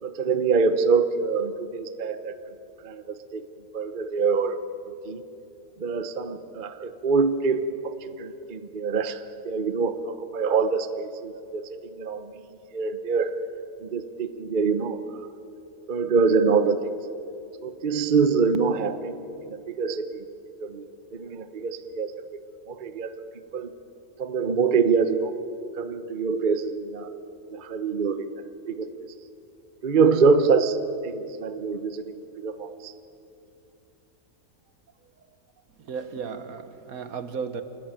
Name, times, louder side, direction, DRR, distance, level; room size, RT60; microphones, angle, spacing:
voice 1, 0.0-2.3 2.8-3.4 3.7-4.6 5.0-5.2 5.8-12.5 12.7-13.4 13.8-15.3 15.9-16.9 17.6-20.3 20.6-22.2 22.7-23.2 23.5-23.7 24.2-25.4 25.7-27.1 27.5-29.1 29.8-30.8 31.0-32.9, right 5 dB, 40° right, 10 dB, 0.9 m, -25 dB
voice 2, 35.9-37.6, right 6 dB, 65° right, 10 dB, 1.6 m, -34 dB
27.5 x 14.0 x 9.0 m, 2.7 s
omnidirectional pair, 1.6 m